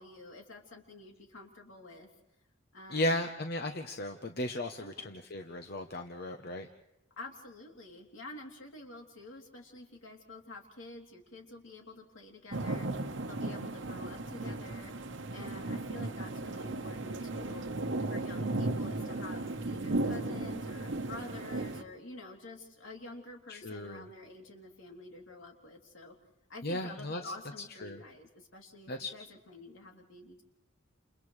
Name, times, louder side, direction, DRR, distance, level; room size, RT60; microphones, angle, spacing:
voice 1, 0.0-2.1 2.7-3.2 4.8-5.1 7.2-14.9 15.3-17.7 18.1-26.1 26.5-30.4, left 2 dB, 75° left, 1 dB, 3.2 m, -49 dB
voice 2, 2.9-6.7 23.5-24.1 26.6-27.3 27.8-28.0 28.9-29.1, left 1 dB, 50° left, 6 dB, 0.9 m, -35 dB
sound 1, 12.5-21.8, right 2 dB, 65° right, 1.1 m, -35 dB
29.5 x 29.0 x 3.3 m, 0.89 s
head